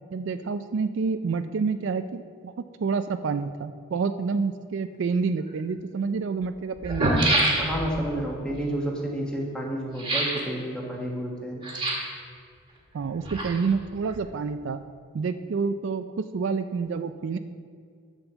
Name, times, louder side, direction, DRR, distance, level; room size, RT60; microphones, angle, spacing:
voice 1, 0.1-2.5 2.8-7.1 12.9-14.8 15.1-17.4, right 5 dB, 60° right, 10 dB, 0.3 m, -28 dB
sound 1, 5.5-5.6 6.4-6.5 6.8-8.0 10.0-10.5 11.6-12.2 13.0-13.8 14.1-14.2, right 1 dB, 25° right, 1.7 m, -25 dB
voice 2, 7.6-11.6, right 1 dB, 5° left, -2 dB, 1.5 m, -30 dB
10.0 x 5.4 x 7.1 m, 2.2 s
head